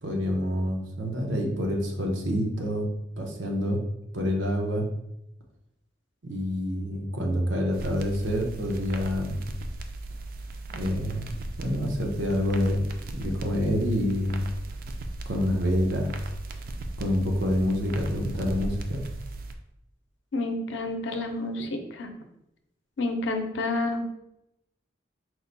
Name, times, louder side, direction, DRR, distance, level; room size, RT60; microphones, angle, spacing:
voice 1, 0.0-2.9 3.2-3.8 4.1-4.9 6.2-9.4 10.7-11.3 11.6-12.8 13.1-14.5 15.3-16.1 17.0-19.0, equal, 90° right, 2 dB, 0.8 m, -27 dB
sound 1, 7.7-19.5, right 2 dB, 50° right, 0.4 m, -37 dB
voice 2, 20.3-22.1 23.0-24.1, left 2 dB, 90° left, 4 dB, 0.6 m, -29 dB
4.6 x 2.2 x 3.9 m, 0.84 s
head